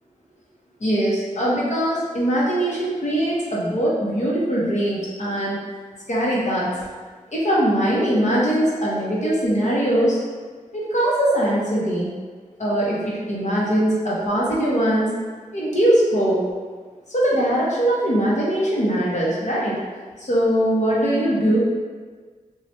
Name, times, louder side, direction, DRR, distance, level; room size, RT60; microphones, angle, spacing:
voice 1, 0.8-5.6 6.1-6.8 7.3-10.2 10.7-12.1 12.6-15.1 15.5-16.4 17.1-19.8 20.2-21.6, right 1 dB, 60° left, -6 dB, 0.9 m, -21 dB
3.1 x 2.4 x 2.7 m, 1.5 s
cardioid pair, 50°, 14 cm